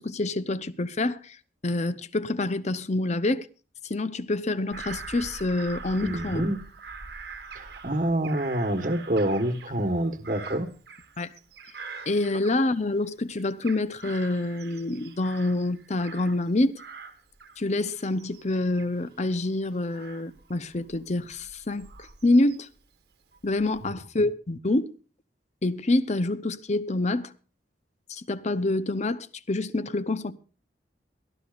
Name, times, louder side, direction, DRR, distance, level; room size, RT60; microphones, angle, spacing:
voice 1, 0.0-1.4 1.6-3.5 3.8-6.4 11.2-11.3 12.1-16.8 17.6-21.9 22.2-22.7 23.4-24.9 25.6-27.3 28.1-30.3, left 2 dB, 40° left, 0.8 m, -27 dB
Bird vocalization bird call bird song / Crow, 4.7-13.0 13.4-16.5 16.8-22.8 23.3-23.9, right 5 dB, 65° right, 1.6 m, -44 dB
voice 2, 6.0-6.6 7.6-10.7, right 1 dB, 45° right, 1.4 m, -27 dB
22.5 x 13.0 x 2.5 m
head